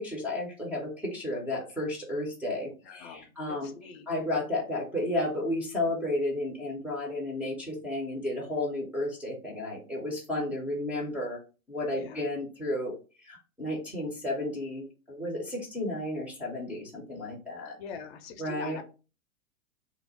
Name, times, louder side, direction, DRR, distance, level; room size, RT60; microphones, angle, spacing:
voice 1, 0.0-11.4 11.7-12.9 13.2-17.8 18.4-18.8, left 1 dB, 5° right, -2 dB, 0.5 m, -33 dB
voice 2, 2.8-4.1 11.9-12.2 17.8-18.8, left 6 dB, 45° left, 7 dB, 0.6 m, -43 dB
2.9 x 2.1 x 4.0 m, 0.33 s
hypercardioid pair, 115°, 42 cm